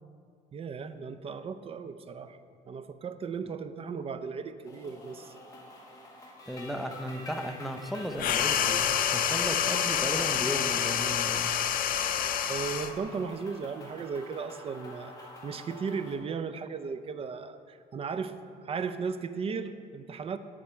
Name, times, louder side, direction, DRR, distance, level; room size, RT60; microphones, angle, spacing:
voice 1, 0.5-2.4 2.7-5.3 12.5-18.4 18.6-20.4, right 5 dB, 35° right, 11 dB, 0.5 m, -36 dB
sound 1, 4.6-16.2, left 1 dB, 20° left, 2.0 m, -47 dB
voice 2, 6.5-11.5, equal, ahead, 4 dB, 0.7 m, -35 dB
sound 2, 8.2-13.0, left 9 dB, 55° left, 0.6 m, -27 dB
14.0 x 5.1 x 4.5 m, 2.2 s
cardioid pair, 110°, 17 cm